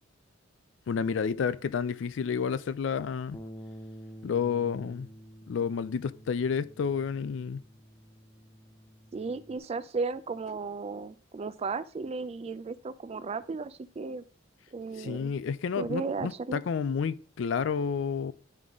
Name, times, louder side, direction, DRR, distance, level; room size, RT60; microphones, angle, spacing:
voice 1, 0.9-3.4 4.2-5.1 5.5-7.6 15.0-18.3, left 6 dB, 65° left, 0.4 m, -30 dB
Bass guitar, 3.3-9.6, equal, 10° left, 0.7 m, -49 dB
voice 2, 9.1-14.2 14.7-15.3 15.8-16.6, right 4 dB, 30° right, 0.3 m, -35 dB
10.5 x 3.9 x 3.5 m
head